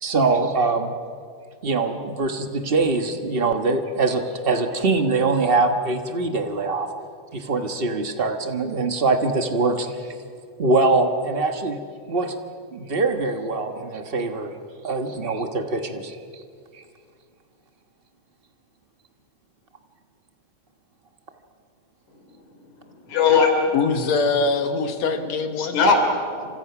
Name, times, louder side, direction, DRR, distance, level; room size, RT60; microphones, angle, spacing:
voice 1, 0.0-0.9 1.6-6.9 7.3-10.1 10.6-11.8 12.1-12.4 12.7-14.5 14.8-16.4, right 3 dB, 80° right, 6 dB, 0.5 m, -23 dB
voice 2, 22.1-22.4 22.8-23.7 25.1-25.2 25.6-26.5, left 4 dB, 85° left, 4 dB, 4.7 m, -21 dB
voice 3, 23.7-25.8, left 4 dB, 70° left, 6 dB, 2.8 m, -23 dB
30.0 x 26.5 x 6.0 m, 2.2 s
omnidirectional pair, 3.3 m